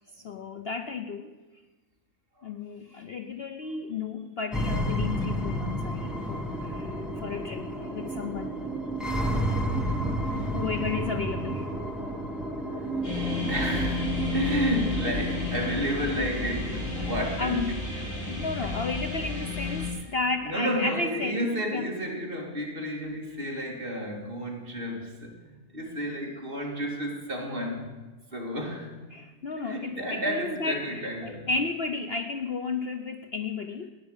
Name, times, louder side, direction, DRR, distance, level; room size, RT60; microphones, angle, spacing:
voice 1, 0.2-1.3 2.4-8.5 10.5-11.7 14.4-14.5 17.0-17.1 17.4-17.6 17.9-21.4 21.7-21.9 29.1-33.9, left 4 dB, 50° left, 7 dB, 0.8 m, -33 dB
sound 1, 4.5-18.5, right 1 dB, ahead, 1.5 m, -32 dB
voice 2, 10.2-10.5 12.7-12.8 13.5-17.8 18.6-18.7 20.4-27.9 28.3-28.9 29.6-31.5, equal, 35° right, 0 dB, 3.0 m, -32 dB
sound 2, 13.0-19.9, left 4 dB, 30° left, 4.9 m, -32 dB
16.0 x 10.0 x 8.2 m, 1.2 s
omnidirectional pair, 1.6 m